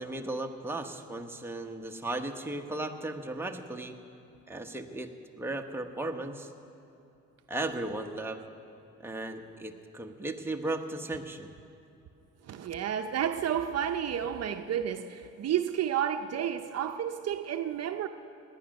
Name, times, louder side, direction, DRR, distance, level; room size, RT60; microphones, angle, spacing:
voice 1, 0.0-3.9 4.5-5.1 5.4-6.5 7.5-8.4 9.0-11.5, right 2 dB, 5° right, 3 dB, 1.1 m, -36 dB
voice 2, 12.4-18.1, right 9 dB, 55° right, 7 dB, 0.7 m, -31 dB
18.0 x 10.5 x 6.5 m, 2.7 s
cardioid pair, 90°, 30 cm